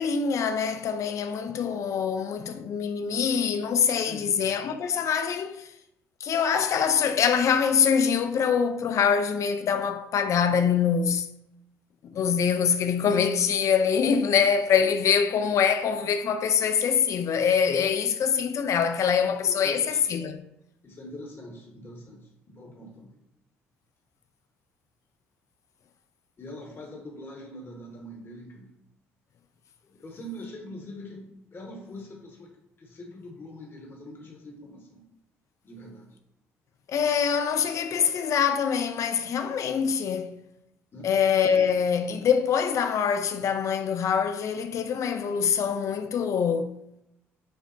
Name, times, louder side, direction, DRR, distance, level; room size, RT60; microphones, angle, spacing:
voice 1, 0.0-5.7 6.2-11.3 12.0-20.4 36.9-40.4 41.0-46.7, left 7 dB, 55° left, 0.4 m, -24 dB
voice 2, 4.1-4.5 19.5-20.0 20.8-23.1 26.4-28.7 29.8-31.2 31.5-32.5 32.8-35.1 35.6-36.1 40.9-41.1, left 1 dB, 35° left, 0.9 m, -43 dB
5.7 x 2.1 x 2.6 m
hypercardioid pair, 55°, 6 cm